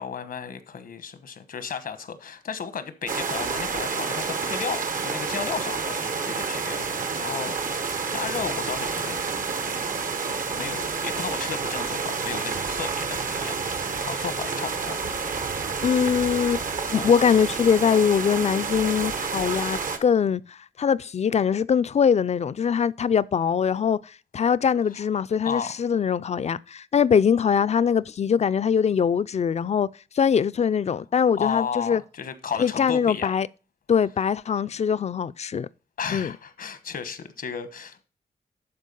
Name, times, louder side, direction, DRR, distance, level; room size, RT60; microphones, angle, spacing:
voice 1, 0.0-6.9 7.1-9.2 9.6-10.1 10.5-13.6 14.1-15.0 24.9-25.1 25.4-25.8 31.4-33.3 36.0-38.0, left 6 dB, 80° left, 1.1 m, -34 dB
sound 1, 3.1-20.0, right 5 dB, 65° right, 1.1 m, -29 dB
voice 2, 15.8-24.0 24.3-29.9 30.1-32.0 32.6-33.5 33.9-35.7 36.1-36.3, left 7 dB, 50° left, 0.4 m, -22 dB
12.0 x 4.5 x 5.4 m
wide cardioid pair, 95°, 15 cm